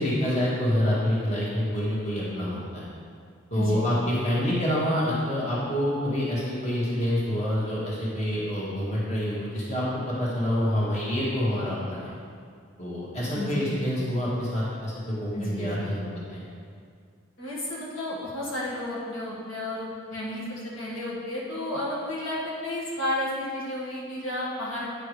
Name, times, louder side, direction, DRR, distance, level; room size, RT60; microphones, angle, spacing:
voice 1, 0.0-2.9 3.5-12.1 12.8-15.9 16.3-16.4, equal, 35° left, -7 dB, 1.7 m, -27 dB
voice 2, 3.5-3.9 13.3-13.8 15.3-16.0 17.4-25.0, left 1 dB, 85° left, -6 dB, 1.8 m, -32 dB
9.4 x 6.0 x 3.3 m, 2.2 s
head